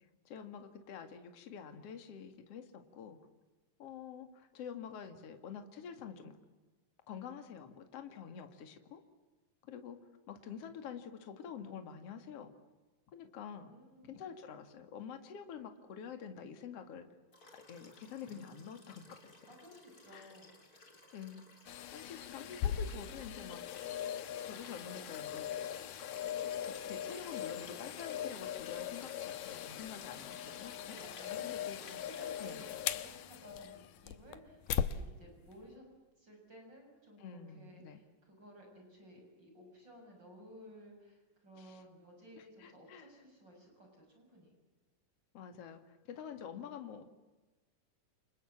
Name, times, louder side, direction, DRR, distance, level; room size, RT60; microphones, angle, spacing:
voice 1, 0.2-3.2 3.8-6.3 7.1-9.0 9.7-10.0 10.3-12.5 13.1-13.7 14.1-17.1 17.7-19.3 20.1-20.3 21.1-21.4 21.9-23.6 24.4-25.5 26.6-31.0 31.4-32.0 32.4-32.6 37.2-38.0 41.6-41.8 42.4-43.1 45.3-47.0, left 7 dB, 50° left, 7 dB, 2.9 m, -47 dB
voice 2, 13.6-14.3 19.4-20.5 30.6-35.8 36.2-44.5, equal, 30° right, 2 dB, 7.4 m, -56 dB
Liquid, 17.3-33.4 34.7-34.8, left 2 dB, 25° left, 3.7 m, -56 dB
sound 1, 21.7-35.0 35.5-35.6, left 10 dB, 85° left, 2.7 m, -40 dB
29.0 x 27.5 x 7.4 m, 1.2 s
omnidirectional pair, 3.8 m